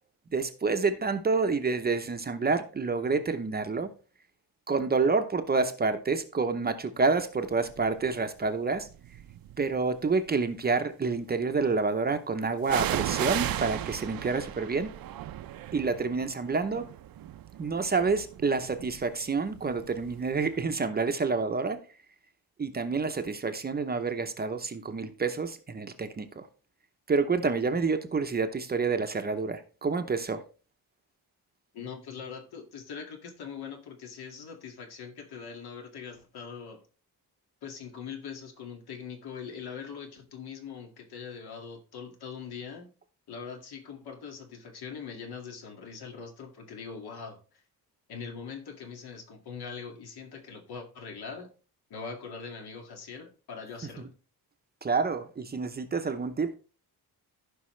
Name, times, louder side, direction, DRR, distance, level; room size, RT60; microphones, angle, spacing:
voice 1, 0.3-3.9 4.7-8.9 9.6-14.9 15.7-16.9 17.6-21.8 22.6-26.5 27.1-30.4 53.8-54.1 54.8-56.5, right 4 dB, 25° right, 0.7 m, -28 dB
sound 1, 7.7-8.1 8.8-9.8 12.7-20.3 20.6-20.7, right 12 dB, 65° right, 0.6 m, -35 dB
voice 2, 31.7-36.8 37.6-42.9 43.3-47.4 48.1-51.5 51.9-54.1, left 6 dB, 75° left, 2.1 m, -42 dB
15.0 x 5.4 x 3.2 m
wide cardioid pair, 165°, 38 cm